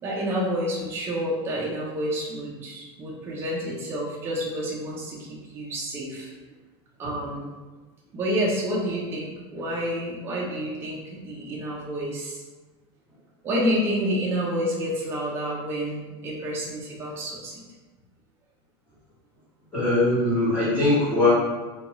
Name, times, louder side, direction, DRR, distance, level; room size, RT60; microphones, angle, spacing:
voice 1, 0.0-6.3 7.0-7.5 8.1-12.4 13.4-17.6, equal, 15° right, -4 dB, 0.5 m, -29 dB
voice 2, 19.7-21.3, left 2 dB, 10° left, -14 dB, 1.0 m, -21 dB
2.6 x 2.2 x 2.9 m, 1.2 s
supercardioid pair, 160°, 14 cm